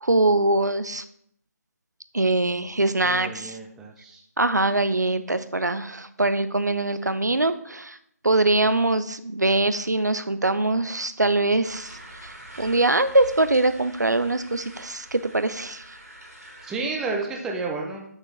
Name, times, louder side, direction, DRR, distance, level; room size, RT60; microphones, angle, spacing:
voice 1, 0.0-1.0 2.1-3.6 4.4-8.0 8.2-15.8, right 2 dB, 90° right, 13 dB, 0.6 m, -23 dB
voice 2, 3.0-4.2 16.6-18.0, right 3 dB, 5° right, 0 dB, 0.4 m, -31 dB
sound 1, 11.6-16.7, right 1 dB, 65° right, 2.3 m, -44 dB
6.2 x 6.2 x 3.2 m, 0.70 s
figure-of-eight pair, 155°, 9 cm